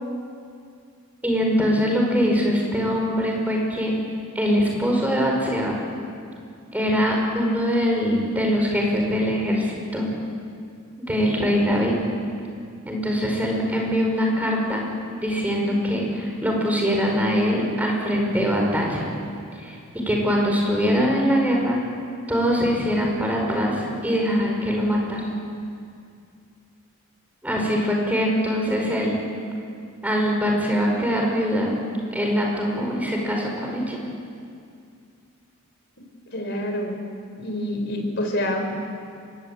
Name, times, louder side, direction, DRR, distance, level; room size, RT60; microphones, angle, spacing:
voice 1, 1.2-3.9 4.4-5.7 6.7-10.1 11.0-12.0 12.9-14.9 15.2-19.0 19.6-19.8 20.1-21.8 22.3-25.3 27.4-29.1 30.0-31.8 32.1-34.0, equal, 5° right, -1 dB, 5.2 m, -22 dB
voice 2, 36.3-37.0 37.4-38.7, left 1 dB, 50° left, 3 dB, 4.5 m, -27 dB
25.0 x 21.5 x 8.9 m, 2.4 s
head